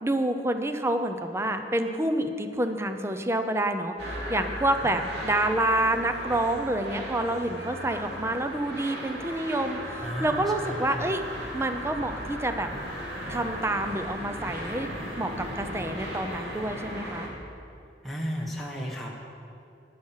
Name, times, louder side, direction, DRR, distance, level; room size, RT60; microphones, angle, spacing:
voice 1, 0.0-11.3 11.5-12.7 13.3-14.9 15.2-17.3, right 1 dB, 15° right, 7 dB, 0.6 m, -28 dB
sound 1, 4.0-17.3, equal, 65° right, 2.7 m, -36 dB
voice 2, 10.0-11.1 18.0-19.1, equal, ahead, -4 dB, 1.1 m, -34 dB
11.0 x 10.0 x 5.7 m, 2.5 s
head